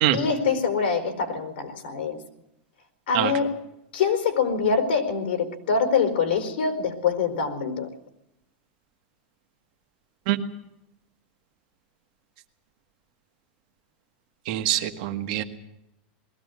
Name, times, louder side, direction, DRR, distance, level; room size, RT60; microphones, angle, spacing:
voice 1, 0.1-2.2 3.1-3.5 3.9-7.9, left 5 dB, 80° left, 7 dB, 4.2 m, -24 dB
voice 2, 14.5-15.4, right 14 dB, 45° right, 6 dB, 1.7 m, -24 dB
21.0 x 16.0 x 9.6 m, 0.86 s
supercardioid pair, 180°, 6 cm